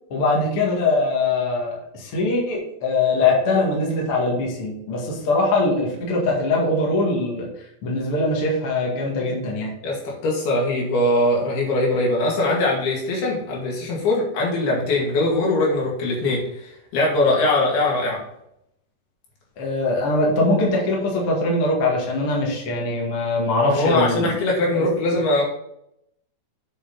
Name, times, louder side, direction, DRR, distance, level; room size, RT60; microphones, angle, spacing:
voice 1, 0.1-7.5 7.8-9.7 19.6-24.3 24.7-24.9, left 2 dB, 45° left, -2 dB, 2.0 m, -22 dB
voice 2, 9.8-16.4 16.9-18.2 23.7-25.4, left 2 dB, 65° left, -3 dB, 3.9 m, -21 dB
8.5 x 5.5 x 3.9 m, 0.78 s
omnidirectional pair, 5.0 m